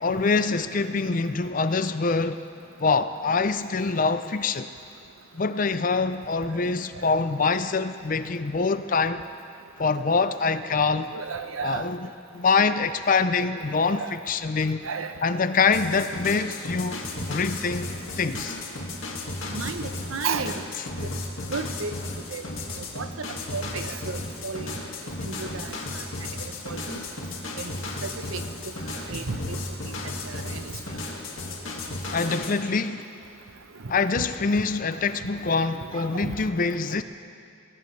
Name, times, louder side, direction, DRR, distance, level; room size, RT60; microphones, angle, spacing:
voice 1, 0.0-2.4 2.8-4.7 5.3-9.2 9.8-11.1 11.6-12.1 12.3-14.9 15.2-17.0 17.3-17.9 18.2-18.6 32.1-33.0 33.9-37.0, left 4 dB, 40° left, 11 dB, 0.5 m, -25 dB
voice 2, 11.1-11.9 13.9-14.1 14.8-15.1 19.5-20.6 21.5-21.9 22.3-22.4 23.0-23.1 23.5-24.2 24.4-24.7 25.2-25.7 26.7-27.0 27.6-27.7 28.0-28.4 29.1-29.6 30.3-30.6 34.2-34.3 35.9-36.3, right 5 dB, 90° right, 9 dB, 0.8 m, -32 dB
sound 1, 15.7-32.6, left 2 dB, 80° left, 2.0 m, -34 dB
22.5 x 16.5 x 3.3 m, 2.6 s
head